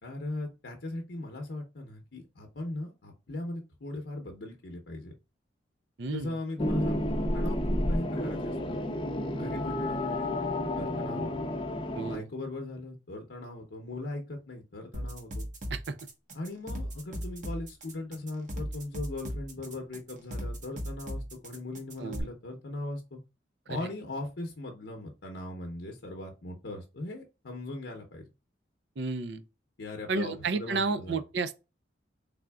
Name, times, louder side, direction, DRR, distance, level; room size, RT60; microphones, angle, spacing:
voice 1, 0.0-5.1 6.1-8.8 9.4-10.4 10.8-11.5 12.1-15.5 16.3-23.2 23.7-28.3 29.8-31.2, left 2 dB, 70° left, 0.7 m, -39 dB
voice 2, 6.0-6.3 12.0-12.2 15.7-16.0 22.0-22.3 29.0-29.4 30.1-31.5, right 4 dB, 65° right, 0.5 m, -31 dB
sound 1, 6.6-12.2, left 1 dB, 25° left, 0.5 m, -30 dB
sound 2, 14.9-22.2, equal, 45° right, 1.1 m, -37 dB
3.7 x 3.4 x 2.2 m
head